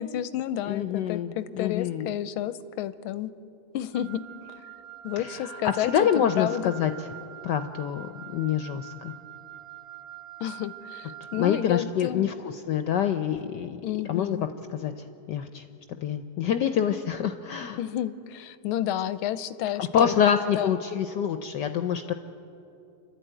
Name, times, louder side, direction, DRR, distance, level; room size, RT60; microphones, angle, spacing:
voice 1, 0.0-3.3 3.7-4.2 5.0-5.9 6.4-6.7 10.4-12.3 13.8-14.5 17.8-20.1 20.5-20.7, left 11 dB, 85° left, 14 dB, 1.5 m, -31 dB
voice 2, 0.7-2.1 5.2-7.1 7.4-9.1 11.4-13.8 14.1-14.4 14.7-15.6 16.0-17.8 19.8-22.1, left 8 dB, 70° left, 8 dB, 1.1 m, -26 dB
Wind instrument woodwind instrument, 3.9-11.7, right 12 dB, 85° right, 0.5 m, -44 dB
29.0 x 12.0 x 9.1 m, 2.8 s
omnidirectional pair, 2.3 m